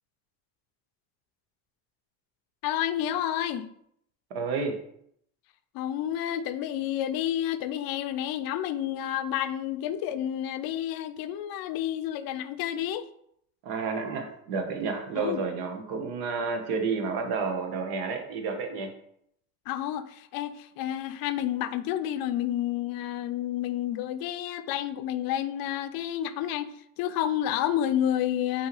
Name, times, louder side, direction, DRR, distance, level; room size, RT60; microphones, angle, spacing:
voice 1, 2.6-3.7 5.7-13.1 15.2-15.4 19.7-28.7, left 11 dB, 65° left, 12 dB, 0.5 m, -30 dB
voice 2, 4.3-4.8 13.6-18.9, right 4 dB, 75° right, 4 dB, 1.0 m, -30 dB
5.4 x 2.8 x 3.0 m, 0.71 s
supercardioid pair, 80°, 39 cm